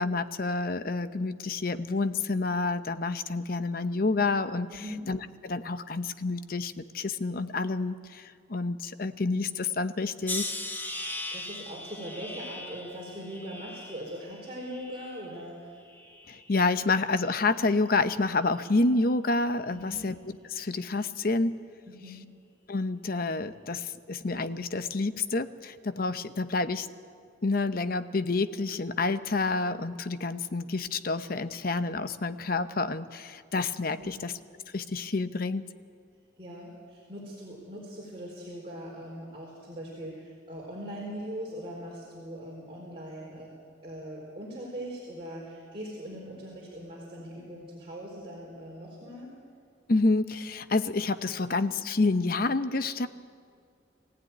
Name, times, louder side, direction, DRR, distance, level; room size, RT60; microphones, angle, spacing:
voice 1, 0.0-4.7 5.1-10.6 16.3-20.1 20.5-21.6 22.7-26.9 27.4-34.3 34.7-35.6 49.9-53.1, left 3 dB, 55° left, 11 dB, 0.8 m, -28 dB
voice 2, 4.7-5.0 11.3-15.8 19.7-20.1 21.9-22.3 34.0-34.2 36.4-43.5 43.8-49.3, equal, 30° right, -5 dB, 4.3 m, -41 dB
sound 1, 10.3-15.4 15.9-16.6 17.3-17.6, left 1 dB, 10° left, 1.3 m, -39 dB
22.0 x 15.5 x 9.4 m, 2.2 s
head